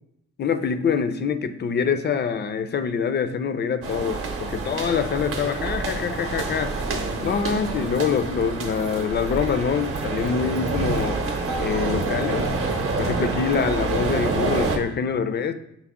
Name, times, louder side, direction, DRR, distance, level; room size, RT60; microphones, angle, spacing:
voice 1, 0.4-6.8 7.2-11.2 11.6-12.5 13.0-15.5, left 6 dB, 35° left, 11 dB, 0.4 m, -25 dB
sound 1, 3.8-14.8, right 3 dB, 45° right, 0.7 m, -27 dB
5.8 x 2.0 x 3.5 m, 0.79 s
cardioid pair, 90°, 30 cm